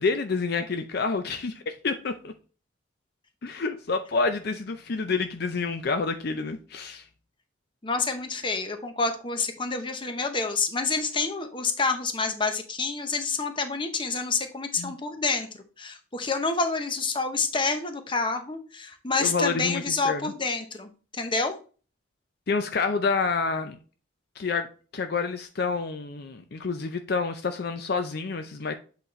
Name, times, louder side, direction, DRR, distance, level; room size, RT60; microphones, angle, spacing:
voice 1, 0.0-2.3 3.4-7.0 14.8-14.9 19.2-20.3 22.5-23.8 24.4-24.7 24.9-28.7, left 4 dB, 55° left, 0.5 m, -28 dB
voice 2, 7.8-21.6, left 4 dB, 25° left, 0.8 m, -28 dB
8.1 x 4.1 x 3.1 m
head